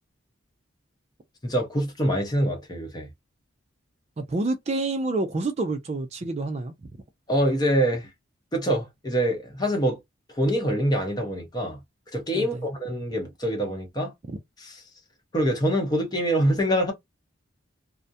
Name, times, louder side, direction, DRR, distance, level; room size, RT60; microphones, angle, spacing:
voice 1, 1.4-3.1 7.3-8.1 8.5-10.0 10.3-11.8 12.1-14.1 14.6-14.8 15.3-16.9, equal, 20° left, 0.7 m, -25 dB
voice 2, 4.2-6.7 12.3-12.5 14.3-14.4, right 2 dB, 30° right, 0.3 m, -28 dB
2.3 x 2.1 x 2.6 m
head